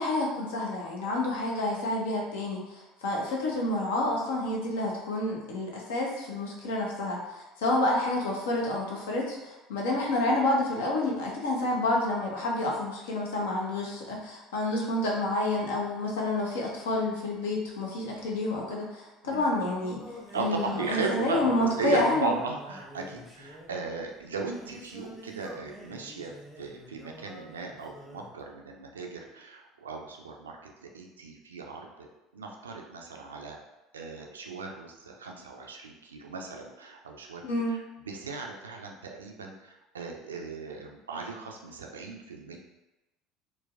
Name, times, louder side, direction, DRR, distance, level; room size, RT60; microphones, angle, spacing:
voice 1, 0.0-20.0 20.3-22.3 37.4-37.8, left 2 dB, 65° left, -2 dB, 0.6 m, -29 dB
Singing, 19.3-28.3, equal, 5° left, 0.8 m, -47 dB
voice 2, 20.3-26.3 26.6-30.5 30.8-32.1 32.3-33.6 33.9-37.8 38.1-42.6, right 4 dB, 75° right, 1 dB, 0.4 m, -36 dB
3.9 x 2.2 x 2.3 m, 1.0 s
figure-of-eight pair, 65°, 0 cm